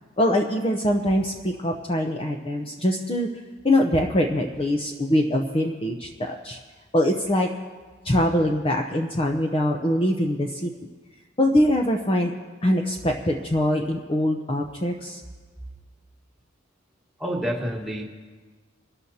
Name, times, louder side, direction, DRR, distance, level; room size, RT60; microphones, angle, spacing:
voice 1, 0.2-3.3 3.6-6.6 6.9-7.5 8.0-10.7 11.4-12.3 12.6-15.2, left 1 dB, 25° left, 2 dB, 0.7 m, -23 dB
voice 2, 17.2-18.0, equal, ahead, -2 dB, 1.5 m, -28 dB
25.0 x 12.5 x 2.8 m, 1.4 s
head